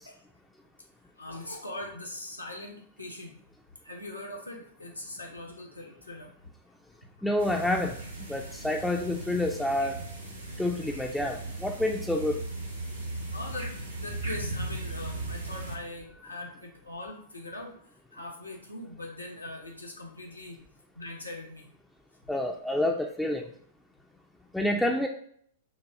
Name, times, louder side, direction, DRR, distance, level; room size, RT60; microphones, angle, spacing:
voice 1, 1.2-3.3 3.8-6.3 7.2-7.3 13.0-13.7 14.0-17.7 18.1-20.6 20.9-21.7, left 2 dB, 90° left, 1 dB, 0.9 m, -41 dB
voice 2, 7.2-8.0 8.3-10.0 10.6-12.4 22.3-23.5 24.5-25.1, left 1 dB, 5° left, 1 dB, 0.3 m, -28 dB
sound 1, 7.4-15.8, right 2 dB, 85° right, 1.2 m, -37 dB
6.1 x 2.3 x 2.6 m, 0.64 s
figure-of-eight pair, 100°, 0 cm